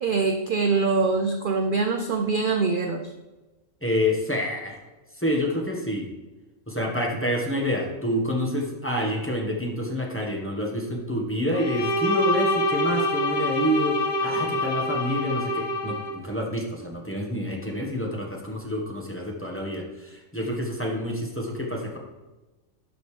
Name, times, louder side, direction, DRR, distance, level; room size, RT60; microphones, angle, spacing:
voice 1, 0.0-3.1, right 4 dB, 60° right, 5 dB, 0.5 m, -24 dB
voice 2, 3.8-4.8 5.1-6.1 6.7-22.0, equal, 10° left, -1 dB, 1.2 m, -28 dB
Bowed string instrument, 11.5-16.2, left 1 dB, 85° left, 1.8 m, -26 dB
12.0 x 5.3 x 3.3 m, 1.1 s
omnidirectional pair, 1.5 m